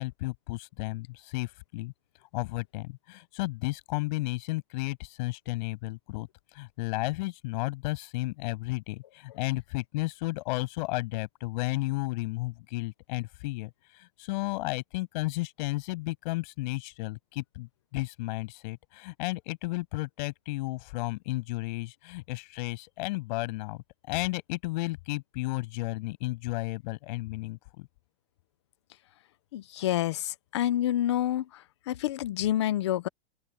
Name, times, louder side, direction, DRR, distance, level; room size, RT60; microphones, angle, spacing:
voice 1, 0.0-1.9 2.3-6.3 6.5-27.9, left 22 dB, 45° left, 6.3 m, -33 dB
voice 2, 29.5-31.5 31.9-33.1, left 12 dB, 25° left, 0.3 m, -28 dB
open air
supercardioid pair, 175°, 33 cm